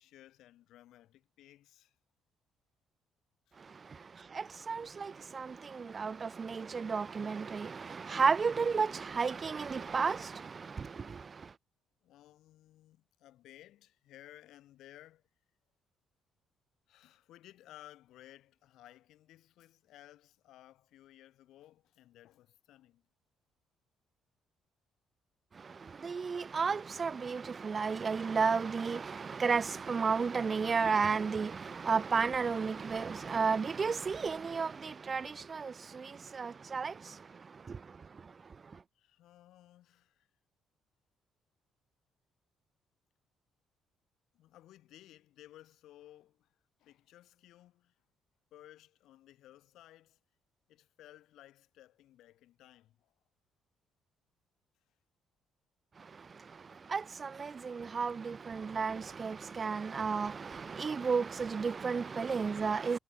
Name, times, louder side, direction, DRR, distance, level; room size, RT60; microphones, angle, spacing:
voice 1, 0.0-2.0 3.5-3.6 4.2-4.3 12.0-15.2 16.9-23.0 38.9-40.3 44.3-47.9 48.5-50.2 50.7-53.1 56.7-56.8, left 14 dB, 75° left, 2.6 m, -58 dB
voice 2, 3.6-11.5 25.5-38.8 56.0-63.0, right 5 dB, 40° right, 0.3 m, -33 dB
supercardioid pair, 60°, 0 cm